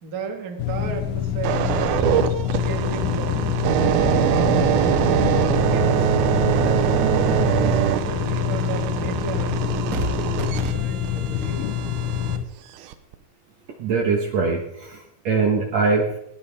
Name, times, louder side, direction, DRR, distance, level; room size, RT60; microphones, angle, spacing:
voice 1, 0.0-2.2 2.6-3.4 3.9-5.0 5.4-6.2 6.5-9.6 9.9-11.8, right 4 dB, 35° right, 3 dB, 1.6 m, -33 dB
sound 1, 0.6-12.4, left 10 dB, 70° left, 2.2 m, -26 dB
sound 2, 1.4-12.4 12.9-13.1, right 10 dB, 85° right, 2.7 m, -23 dB
voice 2, 13.8-16.2, right 4 dB, 60° right, 2 dB, 2.1 m, -22 dB
19.0 x 17.0 x 3.5 m, 0.79 s
omnidirectional pair, 4.3 m